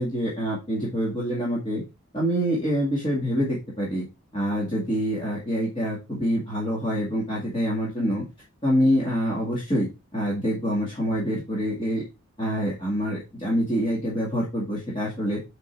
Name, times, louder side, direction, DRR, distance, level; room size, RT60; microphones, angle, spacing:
voice 1, 0.0-1.8 2.1-4.1 4.3-8.2 8.6-12.0 12.4-15.4, equal, 25° left, -6 dB, 2.2 m, -26 dB
7.9 x 3.8 x 4.5 m, 0.27 s
head